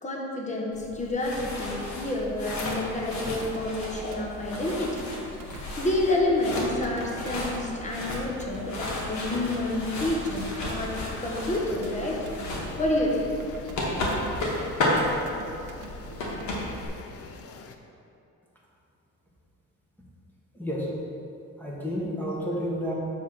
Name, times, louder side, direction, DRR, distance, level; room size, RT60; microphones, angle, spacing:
voice 1, 0.0-5.0 5.5-10.9 11.2-12.2 12.8-13.3, left 2 dB, 25° left, -2 dB, 1.4 m, -29 dB
sound 1, 0.7-16.9, left 1 dB, 65° left, 1.7 m, -33 dB
sound 2, 3.1-16.8, right 3 dB, 85° right, 0.7 m, -46 dB
sound 3, 9.3-17.8, left 5 dB, 50° left, 0.6 m, -46 dB
voice 2, 20.5-20.9 21.6-22.9, equal, 5° left, -5 dB, 1.4 m, -30 dB
7.3 x 3.8 x 6.0 m, 2.6 s
cardioid pair, 90°, 30 cm